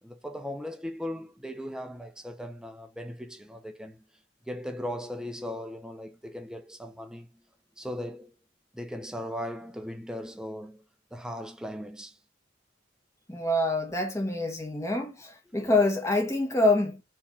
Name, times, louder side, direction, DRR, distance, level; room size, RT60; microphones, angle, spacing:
voice 1, 0.0-4.0 4.5-7.3 7.8-8.3 8.7-10.8 11.1-12.2 15.6-15.7, equal, 5° right, 0.9 m, -38 dB
voice 2, 13.3-17.0, left 2 dB, 15° left, 1.7 m, -26 dB
4.6 x 4.3 x 5.9 m
head